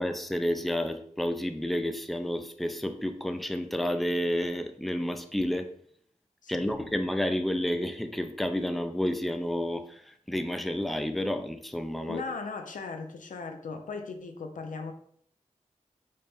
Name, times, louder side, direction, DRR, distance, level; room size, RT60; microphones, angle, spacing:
voice 1, 0.0-5.7 6.5-12.2, equal, ahead, 7 dB, 0.4 m, -30 dB
voice 2, 6.4-6.8 12.1-14.9, left 4 dB, 85° left, 6 dB, 0.4 m, -38 dB
4.2 x 2.1 x 3.4 m, 0.62 s
cardioid pair, 40°, 13 cm